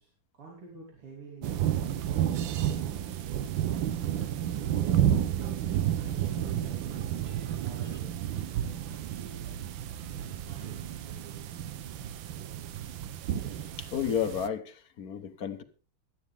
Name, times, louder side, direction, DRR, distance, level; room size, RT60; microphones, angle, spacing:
voice 1, 0.0-3.6 4.1-4.3 4.6-7.1 7.6-8.7 10.4-10.9, right 4 dB, 85° right, 4.2 m, -49 dB
sound 1, 1.4-14.5, right 10 dB, 70° right, 1.5 m, -31 dB
sound 2, 7.0-12.4, right 3 dB, 50° right, 4.2 m, -54 dB
voice 2, 13.8-15.6, left 8 dB, 50° left, 1.4 m, -32 dB
17.5 x 12.5 x 3.5 m
omnidirectional pair, 2.4 m